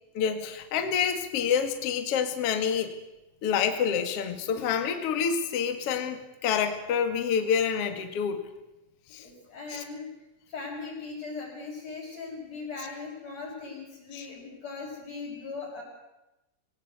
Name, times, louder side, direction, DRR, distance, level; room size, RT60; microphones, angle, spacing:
voice 1, 0.1-2.9 3.4-8.4 9.1-9.2 9.7-9.8 14.1-14.2, left 7 dB, 65° left, 7 dB, 1.4 m, -27 dB
voice 2, 9.2-10.1 10.5-15.8, left 4 dB, 30° left, -2 dB, 7.2 m, -39 dB
24.0 x 18.0 x 8.1 m, 0.97 s
omnidirectional pair, 6.0 m